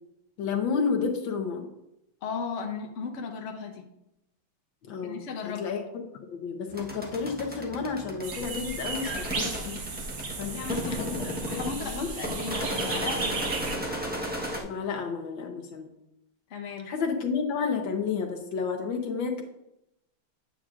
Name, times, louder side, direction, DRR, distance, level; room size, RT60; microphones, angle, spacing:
voice 1, 0.4-1.7 4.9-5.8 6.2-10.0 10.4-12.1 14.6-15.9 16.9-19.4, left 5 dB, 70° left, 3 dB, 1.6 m, -31 dB
voice 2, 2.2-3.8 5.0-5.7 10.4-13.9 16.5-16.9, left 5 dB, 45° left, 2 dB, 1.1 m, -36 dB
sound 1, 6.7-14.6, equal, 10° right, 0.4 m, -35 dB
sound 2, 8.2-13.8, right 3 dB, 50° right, 1.5 m, -35 dB
8.8 x 8.5 x 2.4 m, 0.85 s
omnidirectional pair, 2.3 m